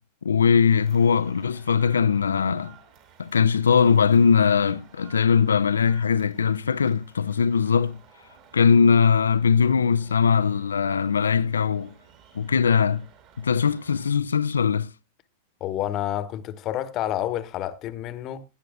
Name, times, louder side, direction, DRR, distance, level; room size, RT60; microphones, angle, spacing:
voice 1, 0.2-2.7 3.2-8.0 8.5-11.9 12.3-13.1 13.4-14.9, left 6 dB, 70° left, 0.5 m, -20 dB
sound 1, 0.7-14.1, right 8 dB, 45° right, 4.2 m, -55 dB
sound 2, 9.6-12.9, equal, 65° right, 5.6 m, -53 dB
voice 2, 15.6-18.4, left 12 dB, 35° left, 1.2 m, -29 dB
18.0 x 11.0 x 2.3 m
figure-of-eight pair, 90°, 0 cm